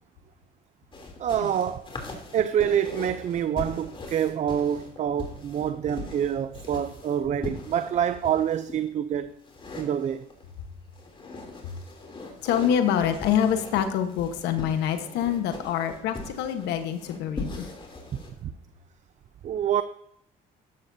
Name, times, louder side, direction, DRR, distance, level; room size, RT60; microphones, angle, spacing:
sound 1, 0.9-8.8 9.4-10.5 10.9-18.3, left 3 dB, 30° left, 3.1 m, -40 dB
voice 1, 1.2-1.9 2.3-9.3 9.8-10.2 18.4-18.5 19.4-19.8, right 9 dB, 45° right, 0.5 m, -26 dB
voice 2, 12.4-17.7, left 9 dB, 90° left, 1.2 m, -26 dB
13.0 x 12.0 x 2.7 m
cardioid pair, 110°, 17 cm